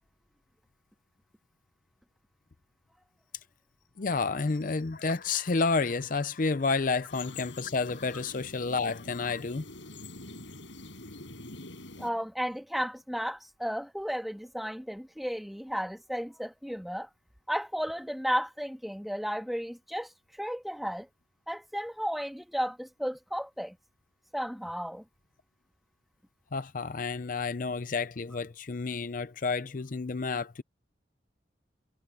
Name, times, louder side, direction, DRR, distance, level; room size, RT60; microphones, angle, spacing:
voice 1, 4.0-9.7 26.5-30.6, left 4 dB, 45° left, 0.5 m, -30 dB
sound 1, 7.1-12.1, left 2 dB, 85° left, 6.0 m, -45 dB
voice 2, 12.0-17.1 17.5-21.1 21.5-23.8 24.3-25.0, equal, ahead, 1.6 m, -34 dB
head